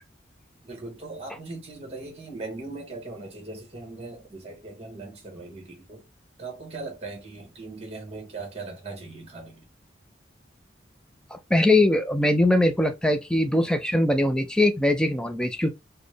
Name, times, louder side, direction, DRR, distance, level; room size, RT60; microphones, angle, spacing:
voice 1, 0.6-6.0 6.4-9.6, right 3 dB, 30° right, 1.4 m, -39 dB
voice 2, 11.3-15.7, left 1 dB, 5° left, 0.4 m, -21 dB
4.1 x 2.1 x 3.2 m
head